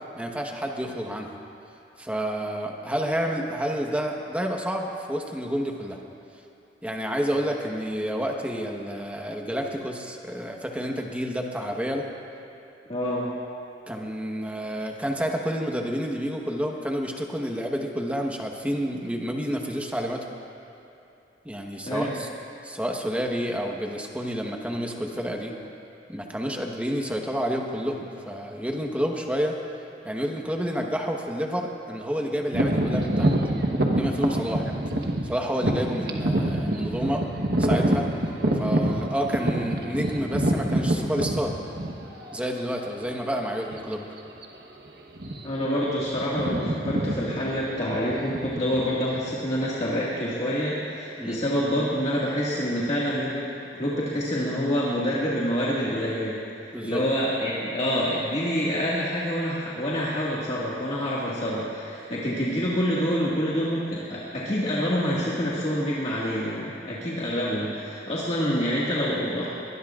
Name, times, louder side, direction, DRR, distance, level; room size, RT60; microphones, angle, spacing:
voice 1, 0.2-1.4 2.0-6.0 6.8-12.1 13.9-20.2 21.4-22.3 22.6-25.5 26.1-29.6 30.0-33.3 33.9-34.9 35.2-37.2 37.6-38.0 38.5-41.5 42.3-44.0 51.2-51.4 56.7-57.0, equal, 10° right, 1 dB, 1.2 m, -29 dB
voice 2, 12.9-13.3 21.8-22.1 45.4-69.5, equal, 40° left, -7 dB, 1.9 m, -27 dB
sound 1, 32.5-42.3 42.9-43.1 43.7-43.9 44.2-44.4 45.1-45.7 45.9-49.3, right 1 dB, 65° right, 1.2 m, -26 dB
22.5 x 20.0 x 2.5 m, 2.9 s
head